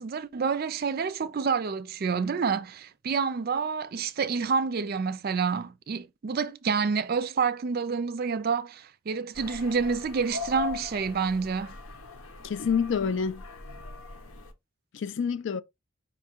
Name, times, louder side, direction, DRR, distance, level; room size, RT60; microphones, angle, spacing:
voice 1, 0.0-11.7, right 5 dB, 45° right, 0.4 m, -28 dB
sound 1, 9.3-14.5, left 6 dB, 85° left, 0.9 m, -40 dB
voice 2, 12.4-13.4 14.9-15.6, left 6 dB, 55° left, 0.4 m, -27 dB
5.2 x 2.3 x 4.3 m
head